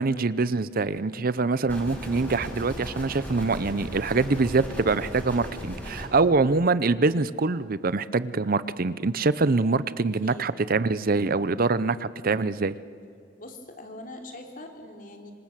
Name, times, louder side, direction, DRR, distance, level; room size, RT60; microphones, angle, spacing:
voice 1, 0.0-12.7, right 3 dB, 55° right, 16 dB, 0.7 m, -24 dB
sound 1, 1.7-6.1, equal, 10° left, 5.2 m, -37 dB
voice 2, 13.4-15.3, left 1 dB, 50° left, 3 dB, 3.3 m, -42 dB
26.5 x 25.5 x 7.6 m, 2.2 s
head